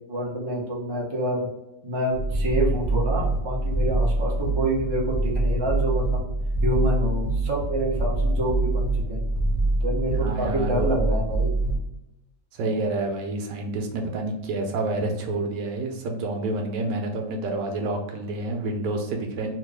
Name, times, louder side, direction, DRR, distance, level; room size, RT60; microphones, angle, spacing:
voice 1, 0.1-1.5 1.8-6.3 6.6-9.3 9.8-11.5, right 1 dB, 40° right, -3 dB, 0.4 m, -27 dB
sound 1, 2.1-11.8, right 2 dB, 55° left, 0.3 m, -25 dB
voice 2, 10.2-11.0 12.5-19.5, right 2 dB, 80° right, 3 dB, 1.3 m, -28 dB
3.0 x 2.5 x 3.3 m, 0.89 s
omnidirectional pair, 1.9 m